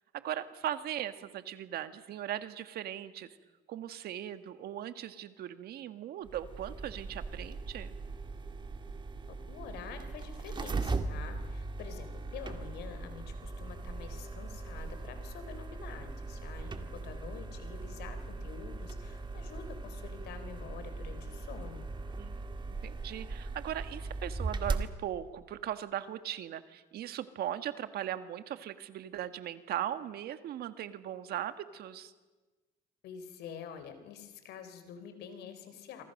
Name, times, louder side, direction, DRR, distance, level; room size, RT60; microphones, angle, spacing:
voice 1, 0.1-3.4 3.7-7.9 22.2-22.4 22.8-32.1, right 11 dB, 70° right, 10 dB, 1.7 m, -39 dB
sound 1, 6.2-24.9, right 3 dB, 25° right, 1.9 m, -39 dB
voice 2, 9.3-21.9 33.0-36.0, left 7 dB, 80° left, 9 dB, 3.6 m, -47 dB
27.5 x 24.5 x 6.6 m, 1.2 s
cardioid pair, 110°, 17 cm